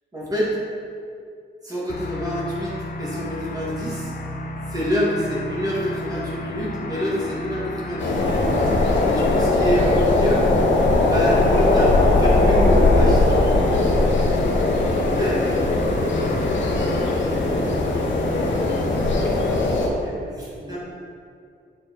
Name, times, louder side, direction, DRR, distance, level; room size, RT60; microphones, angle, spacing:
voice 1, 0.1-0.6 1.6-4.1 4.7-8.4 9.1-10.4 11.0-13.5 13.8-13.9 15.1-15.5 18.3-18.5 20.0-20.8, equal, 20° right, -7 dB, 1.9 m, -26 dB
sound 1, 1.9-19.7, left 1 dB, 50° left, 0.7 m, -32 dB
sound 2, 8.0-19.9, left 2 dB, 85° left, 1.0 m, -19 dB
voice 2, 14.9-18.9 19.8-20.8, equal, 30° left, -12 dB, 1.7 m, -40 dB
8.2 x 4.5 x 4.4 m, 2.3 s
wide cardioid pair, 175°, 19 cm